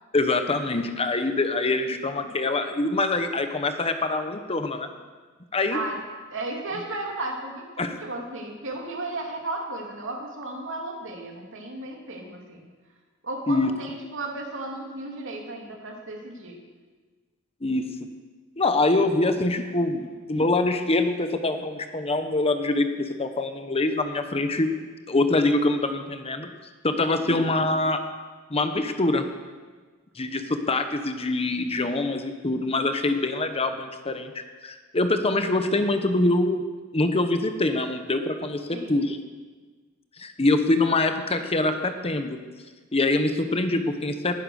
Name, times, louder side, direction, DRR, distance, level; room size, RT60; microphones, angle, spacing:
voice 1, 0.1-4.9 5.5-5.8 7.8-7.9 13.5-13.7 17.6-17.9 18.6-20.0 20.3-24.7 25.1-26.5 26.8-28.0 28.5-29.2 30.2-36.6 36.9-39.2 40.2-42.4 42.9-44.3, left 2 dB, 25° left, 8 dB, 1.0 m, -24 dB
voice 2, 1.9-2.3 5.7-6.0 6.3-12.7 13.2-16.6 19.9-20.0 26.9-27.5 38.7-39.0, right 2 dB, 60° right, 1 dB, 2.9 m, -35 dB
19.5 x 10.5 x 6.5 m, 1.4 s
head